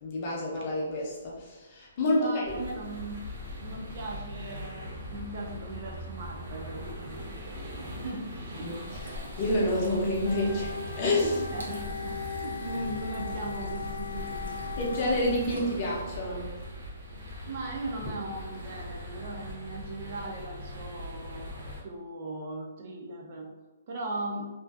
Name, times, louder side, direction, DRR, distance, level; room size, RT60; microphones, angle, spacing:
voice 1, 0.0-2.6 8.6-8.8 9.0-11.5 14.8-16.5, left 1 dB, 30° left, -4 dB, 0.5 m, -29 dB
voice 2, 2.1-3.2 3.6-7.2 7.6-8.7 11.5-14.7 17.5-21.5 21.8-23.5 23.9-24.5, right 2 dB, 35° right, -1 dB, 0.3 m, -38 dB
sound 1, 2.4-21.8, equal, 55° right, 0.7 m, -41 dB
sound 2, 8.5-16.1, left 1 dB, 90° right, 0.6 m, -42 dB
Wind instrument woodwind instrument, 10.2-15.4, left 6 dB, 90° left, 0.3 m, -39 dB
2.5 x 2.2 x 2.3 m, 1.2 s
hypercardioid pair, 170°, 0 cm